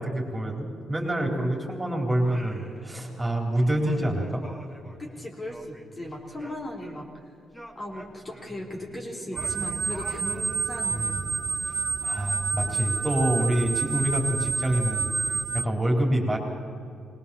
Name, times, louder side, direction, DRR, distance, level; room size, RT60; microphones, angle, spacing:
voice 1, 0.0-4.4 10.9-11.2 11.7-16.4, right 1 dB, 15° right, 0 dB, 3.9 m, -27 dB
Singing, 2.1-3.3 3.6-7.2 7.5-10.7, equal, 5° left, 3.0 m, -46 dB
voice 2, 5.0-7.1 7.7-11.2, left 1 dB, 30° left, 0 dB, 3.4 m, -37 dB
sound 1, 9.4-15.6, right 5 dB, 40° right, 0.5 m, -29 dB
20.0 x 18.5 x 7.1 m, 2.5 s
cardioid pair, 85°, 0 cm